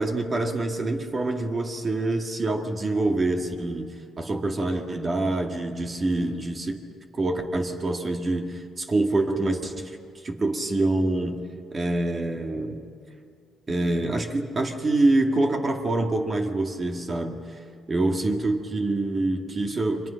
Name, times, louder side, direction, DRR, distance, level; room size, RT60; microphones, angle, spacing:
voice 1, 0.0-3.9 4.2-6.8 7.1-10.0 10.2-11.4 11.7-12.8 13.7-17.6 17.9-20.1, right 2 dB, 35° right, 3 dB, 2.2 m, -26 dB
30.0 x 24.0 x 5.9 m, 2.3 s
cardioid pair, 90°, 0 cm